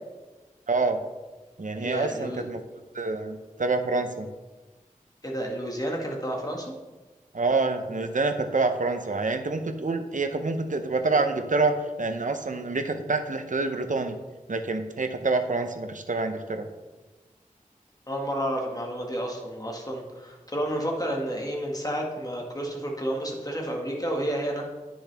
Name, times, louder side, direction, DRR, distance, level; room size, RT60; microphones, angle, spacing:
voice 1, 0.7-1.0 1.6-2.6 2.9-4.3 7.3-14.2 14.5-16.7, right 3 dB, 65° right, 7 dB, 0.8 m, -27 dB
voice 2, 1.8-2.4 5.2-6.7 18.1-24.6, equal, 25° left, 0 dB, 1.8 m, -30 dB
9.9 x 6.3 x 3.5 m, 1.2 s
wide cardioid pair, 45°, 14 cm